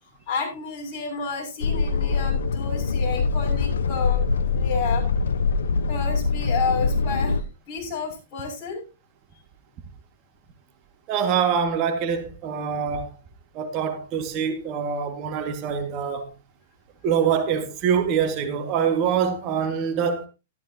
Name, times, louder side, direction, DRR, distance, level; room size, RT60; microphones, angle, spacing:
voice 1, 0.2-5.1 5.9-8.8, left 5 dB, 40° left, 6.7 m, -31 dB
sound 1, 1.6-7.4, left 4 dB, 85° left, 1.0 m, -23 dB
voice 2, 11.1-13.2 13.5-16.3 17.0-20.2, right 7 dB, 40° right, 2.0 m, -24 dB
13.0 x 13.0 x 2.9 m
hypercardioid pair, 130°, 0 cm